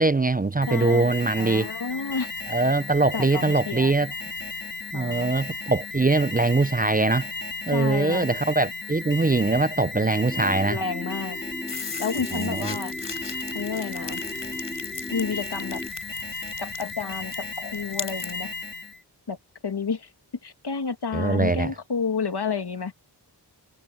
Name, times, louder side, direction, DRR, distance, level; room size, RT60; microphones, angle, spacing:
voice 1, 0.0-1.7 2.5-4.1 4.9-7.3 7.7-10.8 12.3-12.8 21.1-21.7, right 3 dB, 20° right, 0.6 m, -22 dB
Alarm, 0.6-19.0, left 3 dB, 25° left, 5.0 m, -35 dB
voice 2, 0.7-1.1 1.4-2.3 3.1-3.9 4.9-5.3 7.7-8.3 10.3-11.4 12.0-12.9 13.5-14.2 15.1-15.8 16.6-18.5 19.3-19.4 19.6-20.1 20.4-22.9, left 5 dB, 70° left, 2.2 m, -30 dB
sound 1, 10.2-15.9, equal, 5° left, 1.9 m, -38 dB
sound 2, 11.7-18.4, left 5 dB, 85° left, 4.2 m, -39 dB
wide cardioid pair, 50°, 41 cm